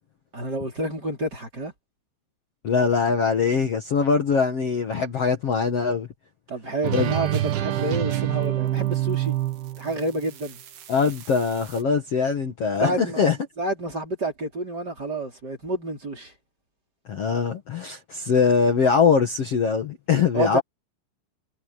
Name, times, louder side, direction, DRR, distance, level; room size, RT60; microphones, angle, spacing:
voice 1, 0.3-1.7 6.5-9.4 9.8-10.6 12.8-13.2 13.6-16.3 20.3-20.6, right 2 dB, 25° right, 5.2 m, -29 dB
voice 2, 2.6-6.1 6.9-7.1 10.9-13.4 17.1-20.6, left 5 dB, 50° left, 2.3 m, -22 dB
sound 1, 6.8-11.8, right 13 dB, 80° right, 3.6 m, -27 dB
omnidirectional pair, 4.3 m